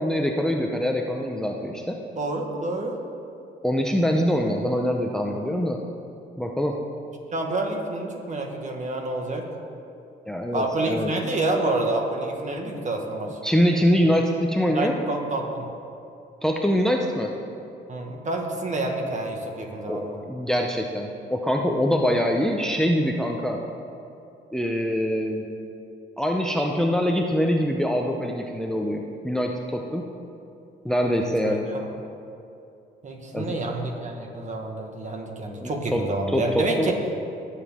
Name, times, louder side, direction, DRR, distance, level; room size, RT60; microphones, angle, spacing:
voice 1, 0.0-2.0 3.6-5.8 6.4-6.8 10.3-11.1 13.4-15.0 16.4-17.3 19.9-23.6 24.5-25.4 26.2-30.0 30.8-31.7 33.3-33.6 35.6-36.9, equal, 5° left, 1 dB, 0.8 m, -24 dB
voice 2, 2.2-3.0 7.3-9.5 10.5-13.4 14.7-15.7 17.9-20.2 31.1-31.9 33.0-37.0, right 2 dB, 35° right, 2 dB, 1.7 m, -28 dB
19.5 x 7.4 x 3.7 m, 2.7 s
cardioid pair, 90°, 20 cm